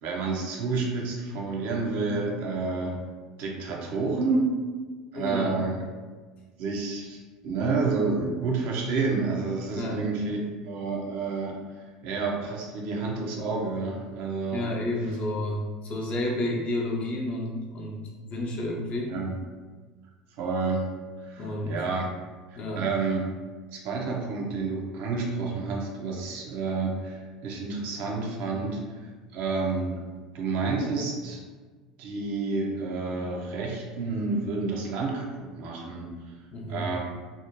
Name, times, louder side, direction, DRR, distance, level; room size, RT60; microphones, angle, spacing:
voice 1, 0.0-3.0 3.4-4.5 5.1-5.8 6.6-11.6 12.0-14.6 19.1-19.4 20.4-20.9 21.2-22.0 22.5-23.2 23.7-27.2 27.4-29.1 29.3-30.0 30.3-31.4 32.0-36.1 36.7-37.0, right 4 dB, 60° right, -2 dB, 0.6 m, -29 dB
voice 2, 5.1-5.5 9.8-10.0 14.5-18.0 18.2-19.1 21.4-21.7 22.5-22.8 36.5-36.9, left 1 dB, 45° left, -1 dB, 0.6 m, -30 dB
2.6 x 2.1 x 2.7 m, 1.4 s
hypercardioid pair, 75°, 3 cm